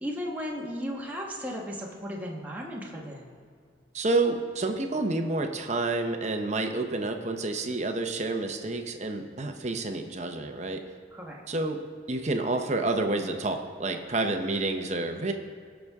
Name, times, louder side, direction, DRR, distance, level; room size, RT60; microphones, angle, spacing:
voice 1, 0.0-3.4 11.1-11.4, equal, 10° right, -3 dB, 1.3 m, -35 dB
voice 2, 3.9-10.8 11.5-11.8 12.1-15.3, right 2 dB, 40° right, 5 dB, 0.8 m, -29 dB
18.5 x 6.2 x 3.6 m, 2.1 s
head